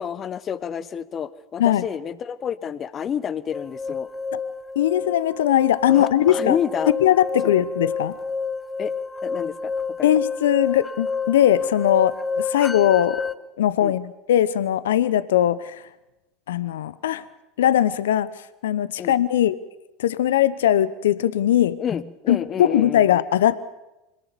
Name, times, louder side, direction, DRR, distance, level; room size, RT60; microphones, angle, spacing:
voice 1, 0.0-4.1 5.9-6.9 7.4-7.5 8.8-8.9 9.2-9.7 10.0-10.1 13.8-14.0 19.0-19.2 21.8-23.0, left 8 dB, 35° left, 16 dB, 1.3 m, -29 dB
sound 1, 3.5-13.4, left 4 dB, 15° left, 0.8 m, -29 dB
voice 2, 4.7-6.6 7.0-8.1 10.0-13.2 13.6-15.8 16.5-17.3 17.6-18.3 18.6-19.6 20.0-21.8 22.3-23.6, left 11 dB, 75° left, 16 dB, 1.0 m, -20 dB
26.0 x 19.0 x 7.0 m, 0.97 s
hypercardioid pair, 80°, 0 cm